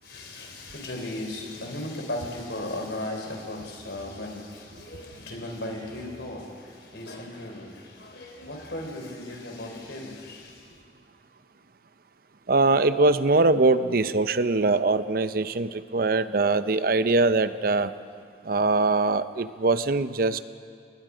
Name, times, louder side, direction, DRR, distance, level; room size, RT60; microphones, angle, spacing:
voice 1, 0.0-10.8, left 1 dB, 75° left, 3 dB, 4.0 m, -36 dB
voice 2, 12.5-17.9 18.5-20.4, right 3 dB, 55° right, 12 dB, 0.7 m, -22 dB
30.0 x 19.5 x 5.1 m, 2.3 s
head